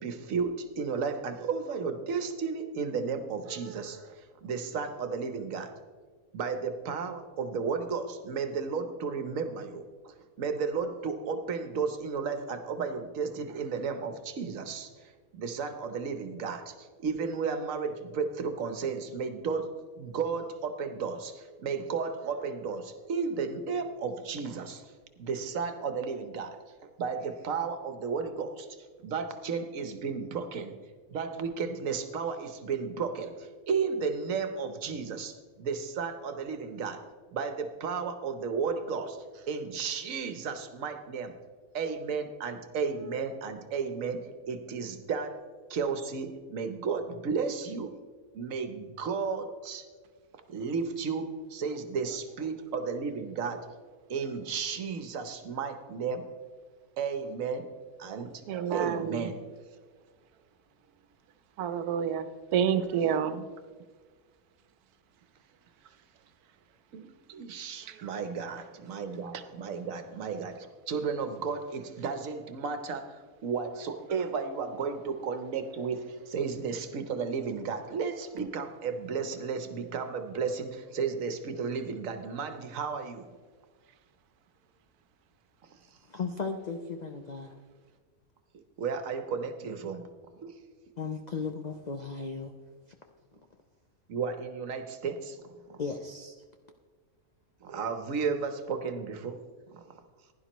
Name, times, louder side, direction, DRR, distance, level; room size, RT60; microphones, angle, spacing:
voice 1, 0.0-5.7 6.3-19.7 20.0-26.6 27.0-30.8 31.1-37.0 37.3-41.4 41.7-45.4 45.7-47.9 48.3-49.9 50.5-53.6 54.1-56.3 57.0-57.7 58.0-58.3 58.7-59.4 62.9-63.0 66.9-83.3 88.8-90.1 90.4-90.6 94.1-95.8 97.6-99.4 99.7-99.8, right 5 dB, 65° right, 8 dB, 1.2 m, -33 dB
voice 2, 58.1-59.3 61.6-62.3 62.5-63.4 67.9-68.1, right 8 dB, 85° right, 10 dB, 1.2 m, -29 dB
voice 3, 86.1-87.6 91.0-92.5 95.8-96.4, left 4 dB, 60° left, 5 dB, 0.4 m, -36 dB
15.5 x 11.0 x 3.0 m, 1.5 s
omnidirectional pair, 1.6 m